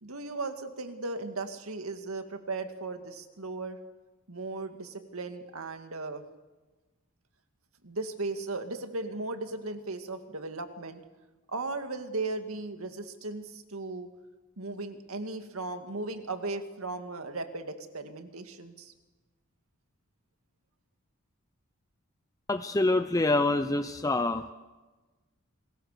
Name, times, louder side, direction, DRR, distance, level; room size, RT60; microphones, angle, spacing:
voice 1, 0.0-3.8 4.3-6.2 7.8-11.0 11.5-14.1 14.6-18.9, right 3 dB, 85° right, 7 dB, 2.1 m, -36 dB
voice 2, 22.5-24.4, left 2 dB, 15° left, 9 dB, 0.7 m, -26 dB
29.0 x 21.0 x 6.7 m, 1.2 s
head